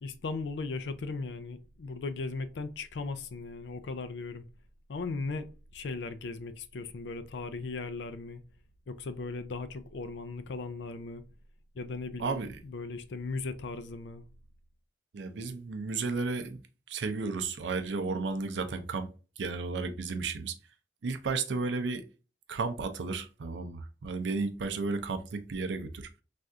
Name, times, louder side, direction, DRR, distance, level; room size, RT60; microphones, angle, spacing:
voice 1, 0.0-4.4 4.9-8.4 8.9-11.2 11.7-14.2, left 3 dB, 75° left, 0.4 m, -37 dB
voice 2, 12.2-12.6 15.1-16.6 16.9-19.1 19.4-20.6 21.0-22.0 22.5-26.1, right 4 dB, 85° right, 0.5 m, -33 dB
3.3 x 2.4 x 2.6 m
head